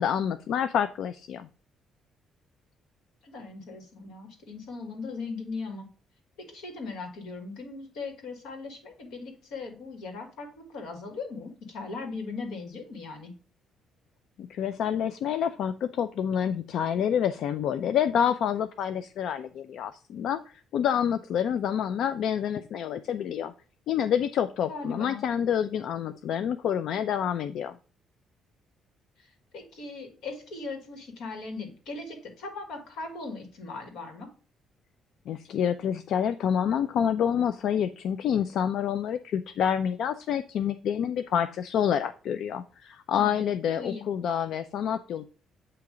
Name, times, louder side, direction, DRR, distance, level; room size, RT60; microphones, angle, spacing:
voice 1, 0.0-1.5 14.4-23.5 23.9-27.8 35.3-45.2, left 8 dB, 60° left, 11 dB, 0.3 m, -28 dB
voice 2, 3.2-5.9 6.4-13.3 24.7-25.2 29.2-34.3 43.2-43.5 43.8-44.0, left 3 dB, 80° left, 5 dB, 1.9 m, -39 dB
8.1 x 2.9 x 4.8 m, 0.40 s
cardioid pair, 175°, 0 cm